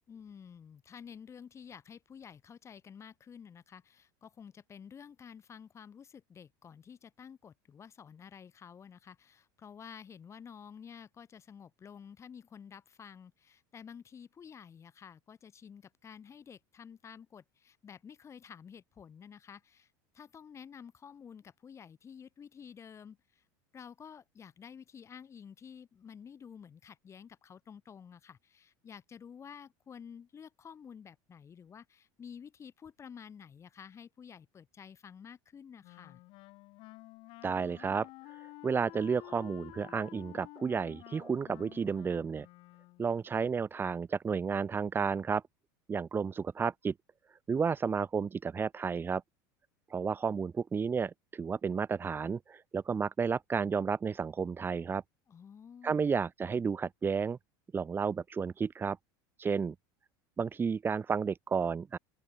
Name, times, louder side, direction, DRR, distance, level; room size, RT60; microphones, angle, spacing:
voice 1, 0.1-23.4 23.7-36.2 55.3-56.1, left 7 dB, 25° left, 2.7 m, -51 dB
Wind instrument woodwind instrument, 35.8-43.2, left 21 dB, 55° left, 5.0 m, -51 dB
voice 2, 37.4-38.1 38.6-42.5 43.0-45.4 45.9-46.9 47.5-49.2 49.9-55.0 55.8-57.4 57.7-59.0 59.4-59.7 60.4-62.0, right 5 dB, 20° right, 0.9 m, -32 dB
open air
supercardioid pair, 120°, 11 cm